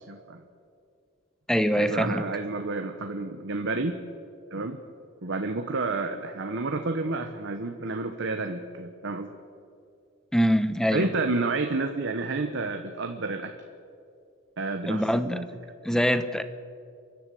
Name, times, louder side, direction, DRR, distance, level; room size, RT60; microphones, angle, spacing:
voice 1, 0.1-0.4 1.7-4.0 4.5-4.8 5.2-9.3 10.9-13.5 14.6-15.4, right 3 dB, 60° right, 5 dB, 1.2 m, -30 dB
voice 2, 1.5-2.3 4.6-4.7 10.3-11.1 14.9-15.4 15.8-16.4, equal, 5° left, 11 dB, 0.9 m, -24 dB
30.0 x 11.5 x 7.8 m, 2.4 s
head